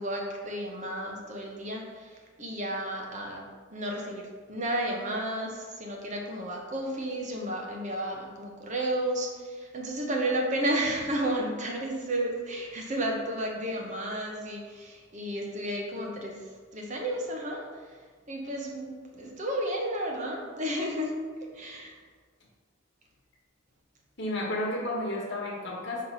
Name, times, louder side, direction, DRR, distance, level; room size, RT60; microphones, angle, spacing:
voice 1, 0.0-3.5 3.7-16.4 16.7-17.6 18.3-21.9, right 1 dB, 35° right, 0 dB, 0.8 m, -32 dB
voice 2, 24.2-26.1, left 1 dB, 60° left, -3 dB, 1.4 m, -32 dB
5.7 x 3.2 x 5.4 m, 1.5 s
head